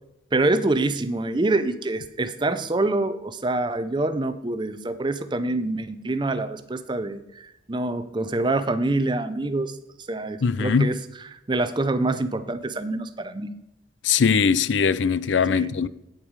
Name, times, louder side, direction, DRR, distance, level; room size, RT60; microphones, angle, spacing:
voice 1, 0.3-9.8 10.1-13.5 15.5-15.7, right 2 dB, 25° right, 0.6 m, -26 dB
voice 2, 10.4-10.9 14.0-15.9, left 6 dB, 90° left, 0.5 m, -21 dB
8.9 x 8.5 x 4.7 m
head